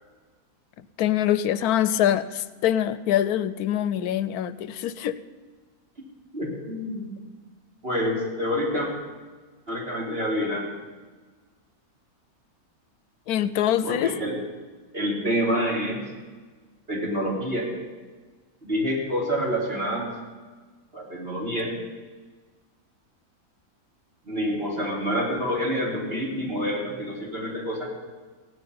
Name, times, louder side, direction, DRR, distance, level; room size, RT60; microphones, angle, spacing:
voice 1, 1.0-5.2 13.3-14.1, left 11 dB, 85° left, 14 dB, 1.1 m, -24 dB
voice 2, 6.3-7.1 7.8-8.9 9.7-10.6 13.8-14.4 14.9-16.0 16.9-17.7 18.6-20.1 20.9-21.7 24.2-27.9, equal, 40° right, -4 dB, 3.6 m, -27 dB
16.5 x 6.4 x 9.3 m, 1.4 s
omnidirectional pair, 1.6 m